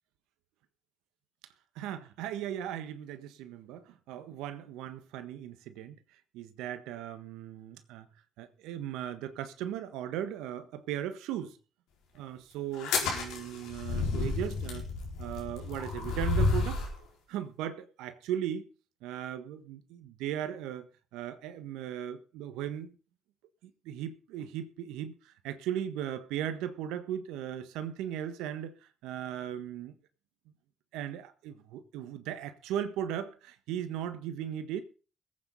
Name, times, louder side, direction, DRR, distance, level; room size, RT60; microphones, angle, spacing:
voice 1, 1.7-6.0 6.3-8.1 8.4-11.6 12.1-14.9 15.2-16.8 17.3-18.6 19.0-23.0 23.6-28.7 29.0-29.9 30.9-34.8, right 10 dB, 80° right, 1.3 m, -37 dB
sound 1, 12.7-17.0, left 3 dB, 80° left, 4.5 m, -31 dB
21.0 x 8.8 x 3.9 m
hypercardioid pair, 55°, 0 cm